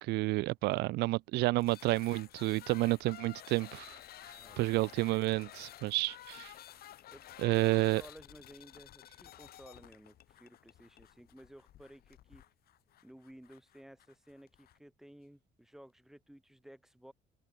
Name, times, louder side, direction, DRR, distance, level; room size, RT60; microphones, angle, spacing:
voice 1, 0.0-4.0 4.3-6.5 7.4-8.0, right 20 dB, 80° right, 0.5 m, -30 dB
sound 1, 1.6-14.8, left 13 dB, 65° left, 2.7 m, -53 dB
voice 2, 4.3-4.9 7.1-12.4 13.0-17.1, equal, ahead, 2.4 m, -55 dB
open air
cardioid pair, 110°, 17 cm